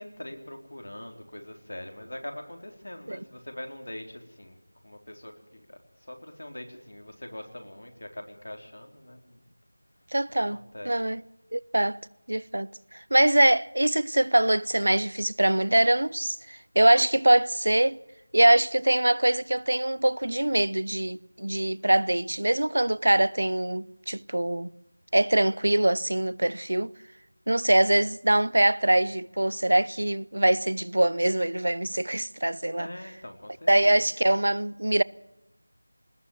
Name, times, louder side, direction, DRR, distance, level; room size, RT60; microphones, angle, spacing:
voice 1, 0.0-4.6 4.8-9.5 10.5-10.9 32.8-34.0, left 1 dB, 65° left, 4.0 m, -42 dB
voice 2, 10.1-11.2 11.5-12.0 12.3-18.0 18.3-24.7 25.1-26.9 27.5-32.9 33.7-35.0, right 1 dB, 65° right, 0.6 m, -23 dB
20.0 x 19.5 x 7.3 m
figure-of-eight pair, 175°, 0 cm